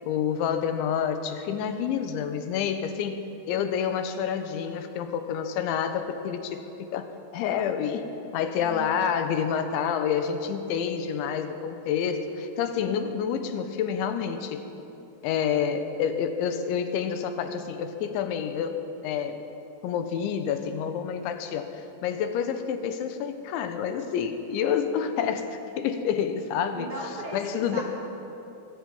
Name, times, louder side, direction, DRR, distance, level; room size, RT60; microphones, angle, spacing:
voice 1, 0.0-14.7 15.2-19.4 19.8-26.9 27.3-27.8, left 7 dB, 80° left, 8 dB, 3.5 m, -28 dB
voice 2, 8.6-9.0 26.7-27.8, right 1 dB, 35° right, -2 dB, 2.7 m, -38 dB
22.0 x 15.0 x 8.8 m, 2.8 s
omnidirectional pair, 5.3 m